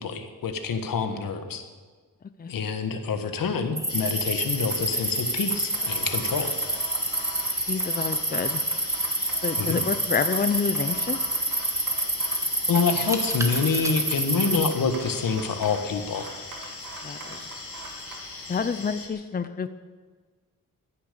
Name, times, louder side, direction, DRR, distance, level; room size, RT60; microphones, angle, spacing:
voice 1, 0.0-1.6 2.5-6.6 9.6-9.8 12.7-16.3, left 5 dB, 85° left, 7 dB, 1.6 m, -27 dB
sound 1, 3.8-14.7, right 1 dB, 10° right, 1.5 m, -28 dB
sound 2, 3.9-19.1, left 4 dB, 45° left, 2.5 m, -40 dB
sound 3, 4.4-18.9, right 4 dB, 85° right, 2.4 m, -43 dB
voice 2, 7.7-8.6 9.4-11.2 17.0-17.4 18.5-19.7, left 5 dB, 25° left, 11 dB, 0.6 m, -28 dB
15.5 x 10.0 x 6.9 m, 1.5 s
wide cardioid pair, 120°, 33 cm